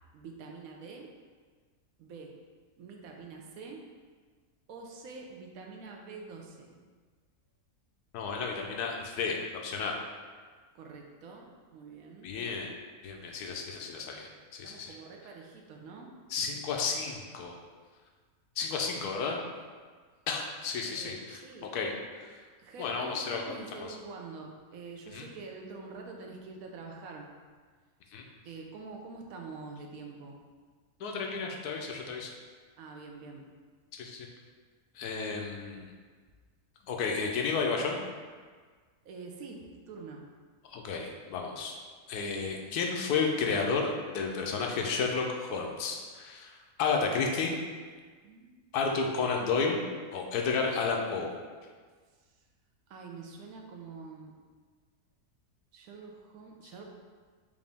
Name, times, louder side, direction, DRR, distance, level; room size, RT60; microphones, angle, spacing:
voice 1, 0.1-1.1 2.0-2.4 2.8-3.8 4.7-6.8 10.7-12.3 14.6-16.1 20.9-21.8 22.6-27.3 28.4-30.4 32.8-33.5 39.0-40.3 48.2-48.5 52.9-54.4 55.7-56.8, right 4 dB, 70° right, 1 dB, 1.0 m, -46 dB
voice 2, 8.1-10.0 12.2-12.7 13.0-14.9 16.3-17.6 18.6-19.4 20.3-21.4 21.7-22.3 22.8-23.9 25.1-25.3 28.1-28.2 31.0-32.3 33.9-34.3 35.0-35.9 36.9-38.0 40.6-41.8 42.1-47.5 48.7-49.8 50.1-51.3, left 4 dB, 90° left, 1 dB, 1.1 m, -32 dB
4.8 x 2.6 x 3.4 m, 1.5 s
omnidirectional pair, 1.6 m